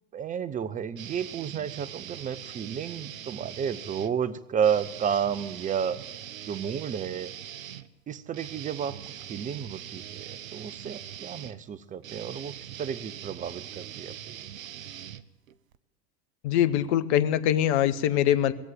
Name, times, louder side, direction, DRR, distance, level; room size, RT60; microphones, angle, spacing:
voice 1, 0.1-6.0 6.5-7.4 8.1-9.0 9.3-14.5, right 8 dB, 20° right, 13 dB, 0.6 m, -32 dB
sound 1, 1.0-4.1 4.6-15.8, right 10 dB, 70° right, 0.8 m, -42 dB
voice 2, 16.4-18.5, left 11 dB, 50° left, 13 dB, 0.9 m, -23 dB
19.5 x 7.6 x 9.3 m, 1.1 s
figure-of-eight pair, 85°, 43 cm